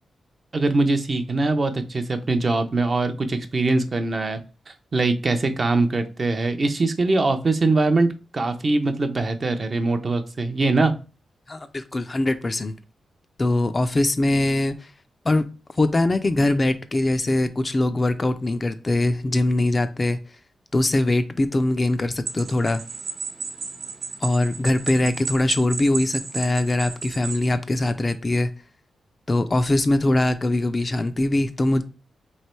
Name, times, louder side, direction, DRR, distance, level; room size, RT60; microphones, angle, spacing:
voice 1, 0.5-4.4 4.9-8.1 8.3-10.9, right 3 dB, 35° right, 7 dB, 0.5 m, -22 dB
voice 2, 11.5-12.7 13.4-14.9 15.3-15.4 15.7-20.2 20.7-22.8 24.2-28.5 29.3-31.8, left 1 dB, 25° left, 10 dB, 0.3 m, -22 dB
sound 1, 22.3-27.5, right 4 dB, 75° right, 1.0 m, -33 dB
3.2 x 3.0 x 4.3 m, 0.33 s
wide cardioid pair, 110°, 0 cm